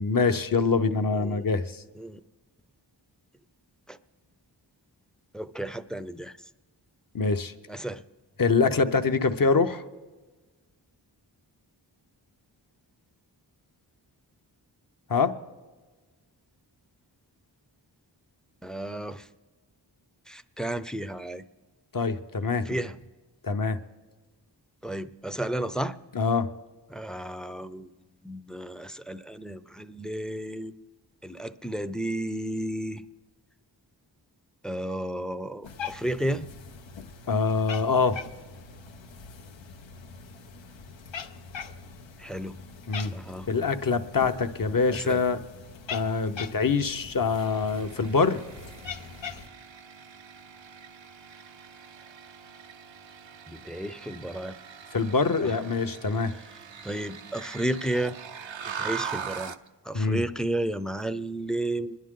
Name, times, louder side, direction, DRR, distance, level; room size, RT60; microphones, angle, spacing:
voice 1, 0.0-1.8 7.1-7.5 8.4-9.8 15.1-15.3 21.9-22.6 23.4-23.8 26.1-26.5 37.3-38.2 42.9-43.1 43.5-45.4 45.9-48.4 54.9-56.3 59.9-60.2, left 4 dB, 50° left, 8 dB, 0.9 m, -24 dB
voice 2, 1.1-1.5 2.0-2.2 3.9-4.0 5.3-6.3 7.7-8.0 18.6-19.3 20.3-21.4 22.7-22.9 24.8-25.9 26.9-27.9 28.2-30.7 31.2-33.0 34.6-36.5 42.2-42.6 43.1-43.5 44.9-45.2 53.5-54.6 55.4-55.5 56.8-58.2 58.7-59.5 59.8-62.0, right 1 dB, ahead, 12 dB, 0.5 m, -32 dB
Cat, 35.6-49.5, left 6 dB, 85° left, 0.8 m, -42 dB
sound 1, 47.3-59.7, right 7 dB, 90° right, 0.7 m, -41 dB
25.0 x 11.0 x 3.8 m, 1.3 s
wide cardioid pair, 55°, 44 cm